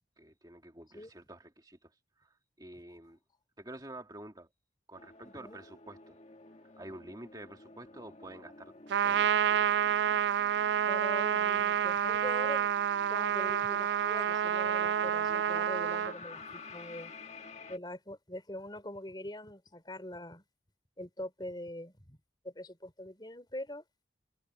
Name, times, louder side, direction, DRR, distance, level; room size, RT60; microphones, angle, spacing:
voice 1, 0.2-1.9 2.2-3.2 3.6-4.5 4.9-6.2 6.8-8.7 9.0-9.7, right 1 dB, 25° right, 2.2 m, -49 dB
sound 1, 4.9-17.8, left 4 dB, 40° left, 1.5 m, -50 dB
Trumpet, 8.9-16.1, right 9 dB, 80° right, 0.3 m, -29 dB
voice 2, 10.8-12.7 13.1-17.1 17.7-20.4 21.0-22.2 22.4-23.8, left 1 dB, 25° left, 3.5 m, -43 dB
head